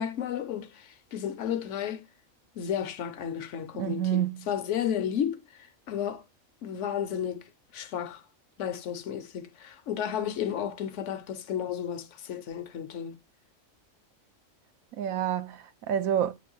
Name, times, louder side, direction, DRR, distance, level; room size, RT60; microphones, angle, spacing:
voice 1, 0.0-2.0 2.6-6.2 6.6-7.4 7.7-8.2 8.6-13.2, left 9 dB, 65° left, 0.9 m, -33 dB
voice 2, 3.8-4.5 15.0-16.3, right 10 dB, 85° right, 1.1 m, -28 dB
7.8 x 3.2 x 5.3 m
omnidirectional pair, 1.4 m